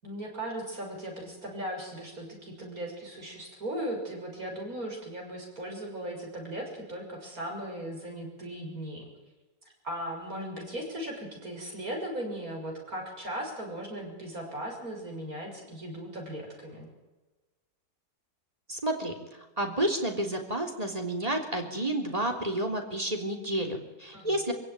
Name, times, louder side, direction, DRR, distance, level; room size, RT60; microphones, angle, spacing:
voice 1, 0.0-9.1 9.8-16.9 24.1-24.4, right 1 dB, 50° right, 0 dB, 7.1 m, -37 dB
voice 2, 18.7-19.2 19.6-24.5, right 1 dB, 20° right, 2 dB, 3.3 m, -30 dB
26.0 x 16.0 x 9.5 m, 1.2 s
omnidirectional pair, 1.9 m